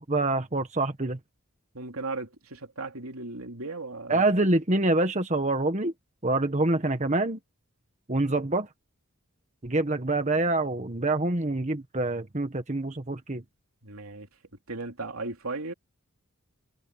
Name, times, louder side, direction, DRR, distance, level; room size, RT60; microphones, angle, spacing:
voice 1, 0.1-1.2 4.1-5.9 6.2-7.4 8.1-8.7 9.6-13.4, right 2 dB, 35° right, 1.4 m, -26 dB
voice 2, 1.7-4.2 13.8-14.3 14.7-15.7, right 3 dB, 80° right, 3.1 m, -36 dB
head